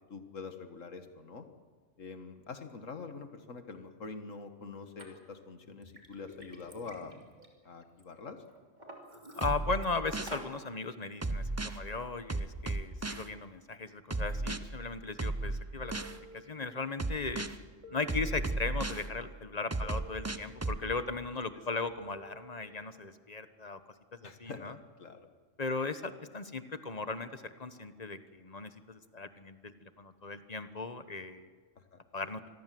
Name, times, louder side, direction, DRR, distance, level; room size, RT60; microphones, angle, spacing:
voice 1, 0.1-1.5 2.0-7.2 7.6-8.4 24.2-25.3 31.9-32.0, left 4 dB, 75° left, 8 dB, 2.0 m, -45 dB
Liquid, 5.0-5.1 5.6-8.0 8.5-9.9 10.3-10.6, right 1 dB, 35° right, 3.4 m, -48 dB
voice 2, 9.4-16.0 16.3-17.5 17.9-23.8 24.2-24.7 25.6-31.5 32.1-32.4, left 3 dB, 35° left, 11 dB, 1.2 m, -37 dB
sound 1, 9.4-10.4 11.2-11.8 12.3-13.3 14.1-14.6 15.2-16.2 17.0-17.6 18.1-19.0 19.7-20.8, right 2 dB, 15° right, 0.7 m, -34 dB
sound 2, 15.8-17.0 17.8-19.0 19.8-21.0 21.8-23.0, right 1 dB, 80° right, 3.8 m, -53 dB
26.0 x 20.5 x 7.7 m, 1.5 s
omnidirectional pair, 1.3 m